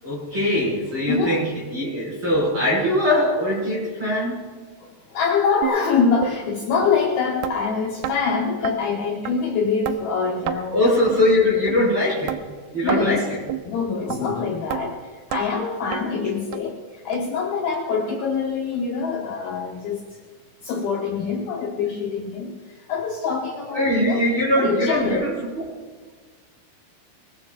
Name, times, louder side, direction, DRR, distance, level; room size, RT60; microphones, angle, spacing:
voice 1, 0.0-4.4 10.7-12.4 12.7-13.4 23.7-25.5, left 1 dB, 25° right, -6 dB, 5.9 m, -21 dB
voice 2, 1.1-1.4 4.8-10.8 12.8-13.3 13.6-20.2 20.6-24.3 24.6-25.4, left 5 dB, 70° left, -2 dB, 2.6 m, -25 dB
sound 1, 5.6-5.8 6.2-6.4 6.8-6.9 7.4-7.6 8.0-8.2 8.6-8.8 9.3-9.4 9.9-10.0 10.5-10.6 11.1-11.2 11.7-11.8 12.3-12.4 12.9-13.1 13.5-13.6 14.1-14.2 14.7-14.8 15.3-15.4 15.9-16.0 16.5-16.6 17.1-17.2 17.7-17.8 18.3-18.4, right 13 dB, 90° right, 2.2 m, -28 dB
23.5 x 21.5 x 2.6 m, 1.6 s
omnidirectional pair, 5.4 m